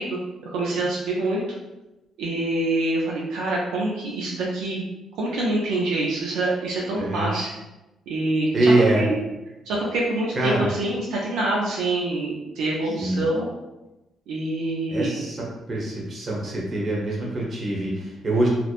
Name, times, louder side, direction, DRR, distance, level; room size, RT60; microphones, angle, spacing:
voice 1, 0.0-1.4 2.2-4.8 5.2-7.5 8.1-9.2 9.7-13.5 14.3-15.2, right 2 dB, 90° right, -4 dB, 0.4 m, -26 dB
voice 2, 7.0-7.3 8.5-9.0 10.3-10.7 13.0-13.2 14.9-18.5, right 2 dB, 45° right, -3 dB, 0.9 m, -23 dB
2.9 x 2.0 x 2.4 m, 1.0 s
cardioid pair, 90°, 0 cm